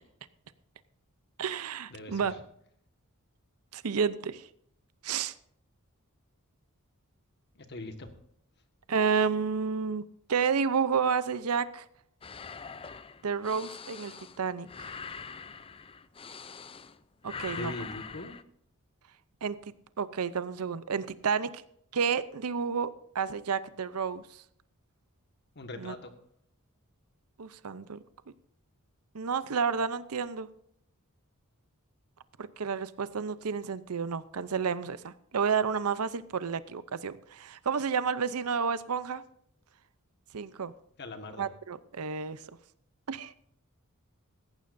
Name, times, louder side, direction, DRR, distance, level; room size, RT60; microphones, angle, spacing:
voice 1, 1.4-2.3 3.7-4.5 5.0-5.3 8.9-10.0 10.3-11.9 13.2-14.9 17.2-17.7 19.4-19.6 20.0-21.6 21.9-24.4 25.8-25.9 27.4-28.0 29.1-30.5 32.4-39.2 40.3-40.7 41.4-42.4 43.1-43.3, right 6 dB, 90° right, 15 dB, 0.7 m, -30 dB
voice 2, 1.9-2.4 7.5-8.1 17.6-18.4 25.5-26.1 41.0-41.5, left 2 dB, 50° left, 7 dB, 1.6 m, -41 dB
sound 1, 12.2-17.0 17.2-18.4, left 5 dB, 25° left, 0.5 m, -43 dB
17.5 x 15.0 x 2.7 m, 0.67 s
head